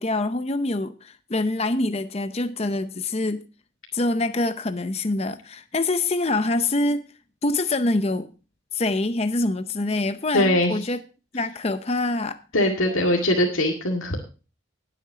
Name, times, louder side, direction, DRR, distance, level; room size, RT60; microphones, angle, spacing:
voice 1, 0.0-3.4 3.9-7.1 7.4-8.3 8.7-11.0 11.3-12.4 12.9-13.0, left 2 dB, 30° left, 0.6 m, -25 dB
voice 2, 10.3-10.7 12.5-14.2, left 1 dB, 85° left, 2.1 m, -21 dB
19.5 x 8.5 x 2.8 m
head